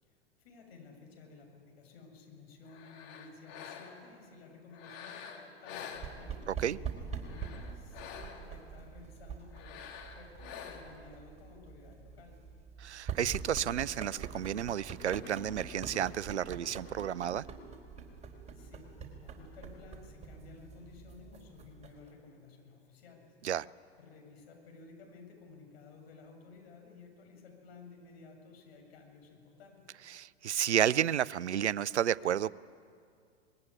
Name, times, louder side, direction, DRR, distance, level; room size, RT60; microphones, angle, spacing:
voice 1, 0.0-6.5 7.0-12.4 18.2-23.4 24.0-30.0, left 4 dB, 60° left, 3 dB, 7.7 m, -55 dB
sound 1, 2.7-4.2 4.7-6.6 7.1-8.6 9.5-11.1, left 7 dB, 45° left, 3.4 m, -47 dB
sound 2, 6.0-22.1, right 5 dB, 20° right, 4.4 m, -45 dB
voice 2, 6.5-6.8 12.8-17.4 23.4-23.7 30.1-32.5, right 10 dB, 80° right, 21 dB, 0.6 m, -31 dB
25.5 x 21.0 x 9.9 m, 2.3 s
figure-of-eight pair, 95°, 34 cm